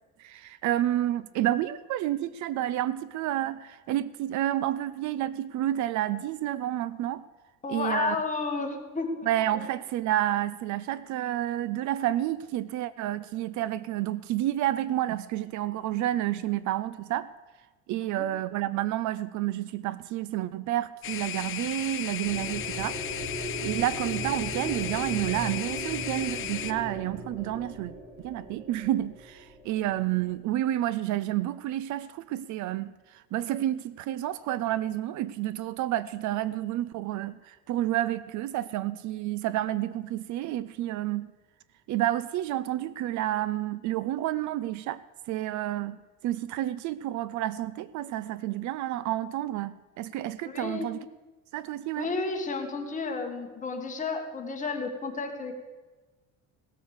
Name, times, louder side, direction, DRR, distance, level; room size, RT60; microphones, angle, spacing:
voice 1, 0.2-7.2 7.7-8.2 9.2-17.3 17.9-23.0 23.6-27.9 28.2-41.3 41.9-45.0 45.3-51.0 51.5-52.1, right 13 dB, 60° right, 17 dB, 0.5 m, -30 dB
voice 2, 7.6-9.3 9.5-9.6 18.0-18.2 50.4-50.9 52.0-55.5, left 4 dB, 25° left, 3 dB, 1.8 m, -32 dB
sound 1, 21.0-26.7, left 11 dB, 40° left, 0.6 m, -35 dB
sound 2, 22.2-30.3, right 1 dB, 30° right, 5.3 m, -38 dB
17.0 x 8.0 x 6.6 m, 1.2 s
cardioid pair, 145°, 33 cm